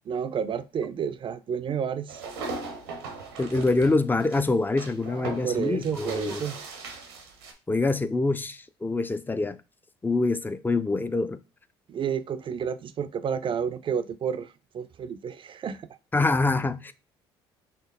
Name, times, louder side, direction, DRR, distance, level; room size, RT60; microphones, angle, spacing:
voice 1, 0.1-2.2 5.1-6.6 11.9-15.9, right 7 dB, 40° right, 0.5 m, -30 dB
sound 1, 2.1-7.5, right 3 dB, 85° right, 0.9 m, -39 dB
voice 2, 3.4-6.4 7.7-9.6 10.0-11.4 16.1-16.9, left 3 dB, 15° left, 0.5 m, -25 dB
4.5 x 3.1 x 3.5 m
hypercardioid pair, 60°, 13 cm